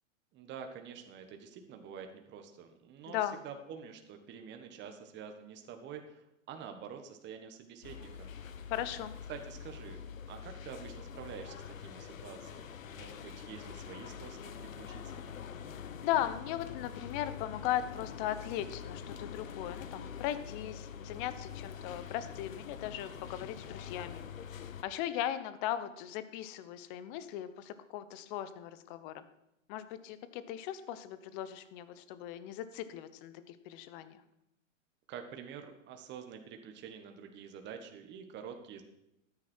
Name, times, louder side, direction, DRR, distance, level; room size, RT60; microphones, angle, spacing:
voice 1, 0.3-8.7 9.3-15.2 35.1-38.8, right 7 dB, 25° right, 5 dB, 1.6 m, -48 dB
voice 2, 3.1-3.4 8.7-9.1 16.0-24.2 24.8-29.2 29.7-34.2, left 12 dB, 40° left, 13 dB, 1.1 m, -38 dB
sound 1, 7.8-24.8, left 7 dB, 80° left, 1.1 m, -45 dB
13.5 x 9.9 x 4.5 m, 0.84 s
hypercardioid pair, 125°, 40 cm